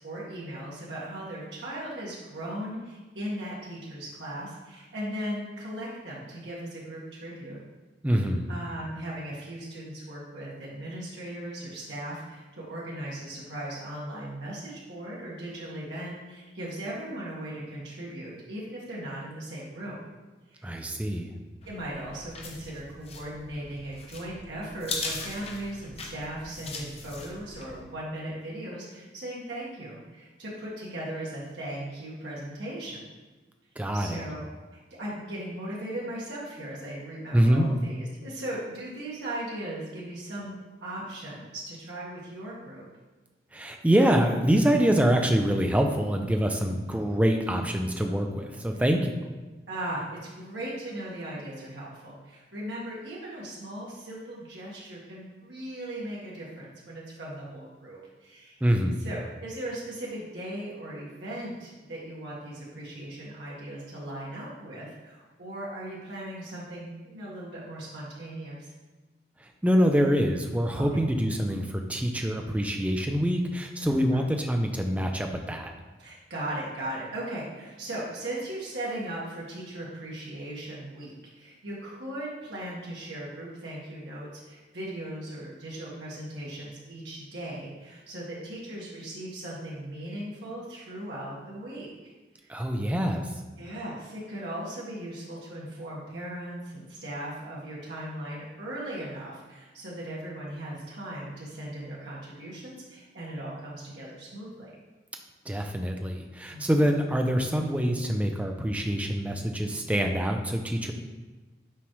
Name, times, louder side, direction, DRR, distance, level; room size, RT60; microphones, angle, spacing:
voice 1, 0.0-7.6 8.1-8.2 8.5-20.0 20.5-20.7 21.6-33.0 33.9-34.4 34.7-40.5 40.8-42.8 46.9-47.0 47.5-47.6 49.7-58.6 59.0-68.7 70.8-70.9 73.8-74.2 76.0-92.1 92.4-92.5 93.6-104.7 106.5-106.6, right 1 dB, 80° right, -6 dB, 1.5 m, -38 dB
voice 2, 8.0-8.5 20.6-21.3 33.8-34.2 37.3-37.7 43.5-49.1 58.6-59.0 69.4-75.7 92.5-93.4 105.5-110.9, equal, 10° right, 3 dB, 0.4 m, -25 dB
sound 1, 21.6-27.8, left 3 dB, 35° left, 0.8 m, -40 dB
7.1 x 4.7 x 3.1 m, 1.3 s
head